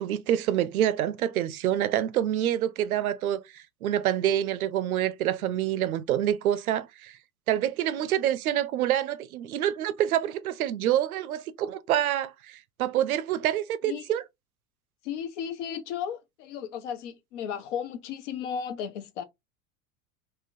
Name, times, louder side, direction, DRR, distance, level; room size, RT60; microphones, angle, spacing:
voice 1, 0.0-7.2 7.5-14.2, right 11 dB, 70° right, 0.5 m, -27 dB
voice 2, 15.0-19.2, left 8 dB, 55° left, 0.7 m, -34 dB
3.6 x 2.1 x 2.6 m
figure-of-eight pair, 80°, 44 cm